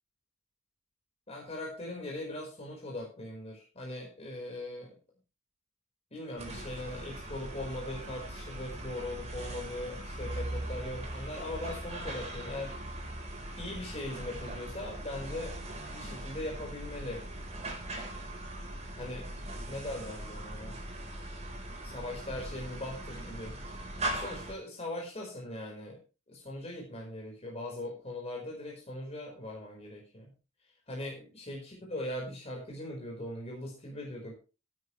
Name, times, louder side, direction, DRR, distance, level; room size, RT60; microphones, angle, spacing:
voice 1, 1.3-5.0 6.1-12.7 13.6-15.6 15.9-17.2 19.0-19.3 19.7-20.8 21.8-23.6 24.1-26.0 26.3-30.3 30.9-34.3, left 1 dB, 30° left, -2 dB, 5.1 m, -40 dB
sound 1, 6.4-24.5, right 1 dB, 35° right, 4.6 m, -40 dB
17.0 x 9.9 x 3.3 m, 0.33 s
head